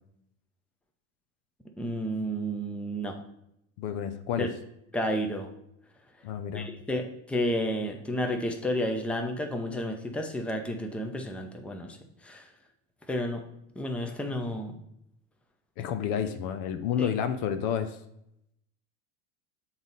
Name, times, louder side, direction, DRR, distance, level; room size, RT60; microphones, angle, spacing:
voice 1, 1.8-3.1 4.4-4.5 4.9-5.5 6.5-12.0 12.2-12.5 13.1-13.4 13.8-14.8 17.0-17.1, equal, 5° left, 3 dB, 0.7 m, -31 dB
voice 2, 3.8-4.5 6.2-6.7 15.8-18.0, left 8 dB, 55° left, 9 dB, 0.7 m, -30 dB
7.0 x 4.0 x 4.0 m, 0.78 s
hypercardioid pair, 105°, 37 cm